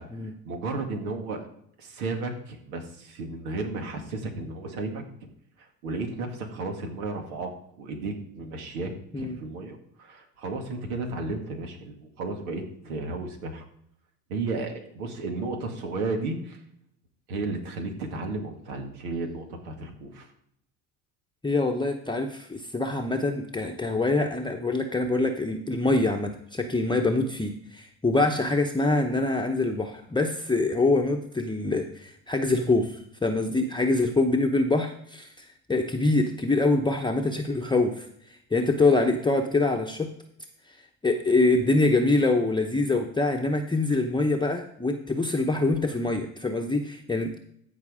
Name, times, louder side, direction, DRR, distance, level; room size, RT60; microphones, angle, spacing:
voice 1, 0.2-1.5 1.8-5.0 5.6-13.7 14.3-16.6 17.3-20.3, right 3 dB, 85° right, 4 dB, 2.0 m, -33 dB
voice 2, 21.4-38.1 38.5-40.1 41.0-47.4, left 2 dB, 10° left, 2 dB, 0.9 m, -25 dB
14.5 x 4.8 x 4.9 m, 0.70 s
hypercardioid pair, 80°, 42 cm